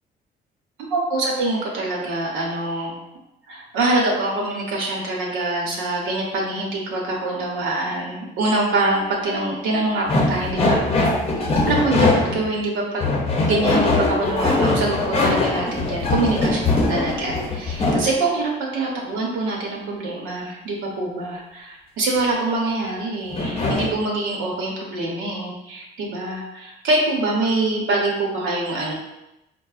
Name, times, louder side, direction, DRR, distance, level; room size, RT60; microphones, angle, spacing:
voice 1, 0.9-3.0 3.5-10.8 11.4-13.2 13.5-28.9, right 2 dB, 90° right, -2 dB, 0.9 m, -24 dB
sound 1, 10.1-12.5 13.0-18.1 23.3-23.9, left 2 dB, 30° left, 0.7 m, -21 dB
4.6 x 2.1 x 2.4 m, 0.91 s
cardioid pair, 90°, 20 cm